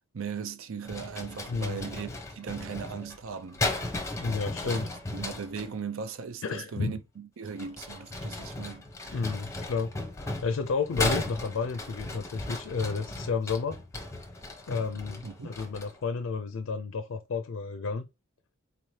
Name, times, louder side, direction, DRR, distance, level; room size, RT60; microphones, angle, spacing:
voice 1, 0.1-3.6 4.6-4.8 5.1-9.4 15.2-15.6, right 6 dB, 80° right, 0.5 m, -38 dB
sound 1, 0.8-5.7 7.4-16.0, left 2 dB, 15° left, 0.8 m, -36 dB
voice 2, 1.5-1.8 4.2-4.9 6.4-6.9 9.1-13.7 14.7-18.1, left 5 dB, 70° left, 0.4 m, -31 dB
4.0 x 2.8 x 3.1 m
head